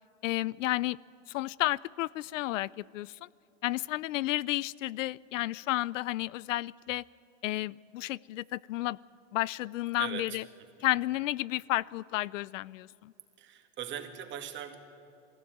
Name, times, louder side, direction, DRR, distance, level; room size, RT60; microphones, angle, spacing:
voice 1, 0.2-1.0 1.3-3.3 3.6-7.0 7.4-9.0 9.3-10.4 10.8-13.1, left 16 dB, 85° left, 22 dB, 0.5 m, -32 dB
voice 2, 9.9-10.4 10.8-10.9 13.4-14.8, right 10 dB, 30° right, 5 dB, 2.1 m, -40 dB
20.0 x 16.0 x 9.3 m, 2.8 s
supercardioid pair, 145°, 37 cm